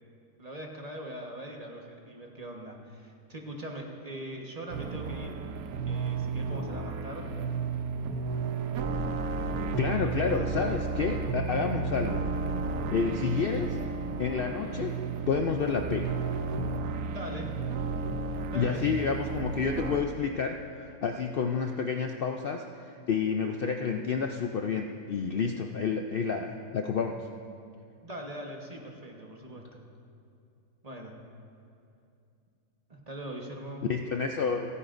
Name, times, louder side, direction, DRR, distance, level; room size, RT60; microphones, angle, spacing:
voice 1, 0.4-5.5 5.9-7.3 9.7-10.1 17.1-17.5 18.5-19.4 28.0-29.8 30.8-31.2 32.9-33.9, right 1 dB, 25° right, 0 dB, 1.2 m, -41 dB
sound 1, 4.7-20.0, right 4 dB, 75° right, 1.1 m, -33 dB
voice 2, 9.7-12.2 12.9-13.8 14.2-15.0 15.3-16.1 18.5-27.2 33.9-34.7, left 5 dB, 80° left, 4 dB, 0.5 m, -29 dB
29.0 x 9.9 x 2.6 m, 2.6 s
omnidirectional pair, 1.6 m